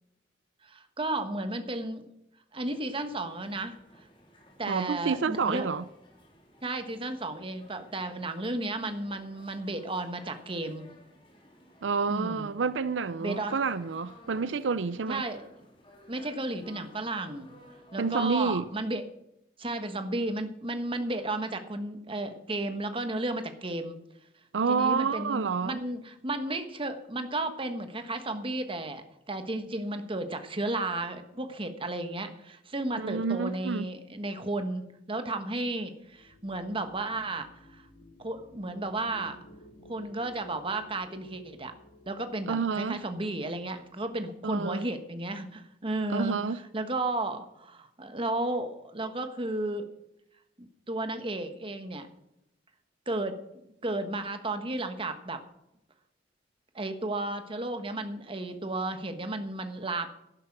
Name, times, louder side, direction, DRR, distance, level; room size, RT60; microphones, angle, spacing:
voice 1, 0.6-2.1 2.5-3.8 4.6-5.7 6.6-10.9 12.1-12.5 13.2-13.6 15.1-15.4 16.1-17.5 17.9-19.1 19.6-24.0 24.7-37.8 38.2-39.4 39.9-41.7 42.1-46.4 46.7-49.9 50.6-52.1 53.1-53.4 53.8-55.4 56.7-60.1, right 2 dB, 30° right, 1.3 m, -33 dB
sound 1, 2.6-18.5, left 1 dB, 30° left, 3.2 m, -56 dB
voice 2, 4.7-5.8 11.8-15.2 18.0-18.6 24.5-25.8 33.0-33.9 42.5-43.0 44.4-44.8 46.1-46.6, right 5 dB, 90° right, 0.5 m, -29 dB
sound 2, 36.0-44.4, left 1 dB, 80° left, 3.7 m, -54 dB
11.5 x 11.5 x 6.0 m
head